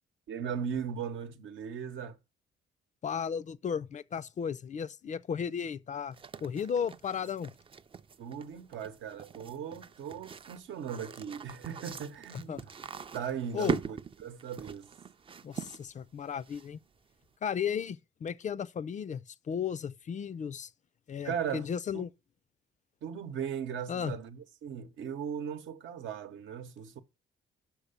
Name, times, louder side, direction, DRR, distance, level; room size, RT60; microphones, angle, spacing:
voice 1, 0.3-2.2 8.2-12.7 13.1-14.9 21.2-21.7 21.9-22.0 23.0-27.0, right 8 dB, 75° right, 0.9 m, -38 dB
voice 2, 3.0-7.5 12.3-12.6 13.5-13.8 15.4-16.8 17.4-20.7 21.1-22.1 23.9-24.1, left 7 dB, 40° left, 0.4 m, -35 dB
sound 1, 6.1-17.0, right 6 dB, 25° right, 0.4 m, -41 dB
6.0 x 5.8 x 6.7 m
cardioid pair, 90°, 20 cm